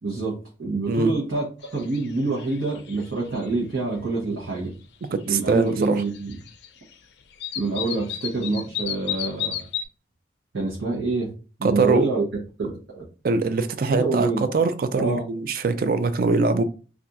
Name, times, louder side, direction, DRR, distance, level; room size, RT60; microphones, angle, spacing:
voice 1, 0.0-1.5 1.7-4.7 5.3-6.4 7.5-9.7 10.5-11.3 11.6-12.2 12.6-13.0 13.9-14.4 14.9-15.2, right 3 dB, 75° right, 0.9 m, -26 dB
sound 1, 1.6-2.1 2.3-3.5 5.0-5.1 5.7-6.7 6.9-7.0 7.4-9.8, left 10 dB, 60° left, 0.4 m, -32 dB
voice 2, 5.1-6.0 11.6-12.1 13.2-16.6, right 3 dB, 50° right, 0.3 m, -22 dB
2.4 x 2.4 x 4.0 m
head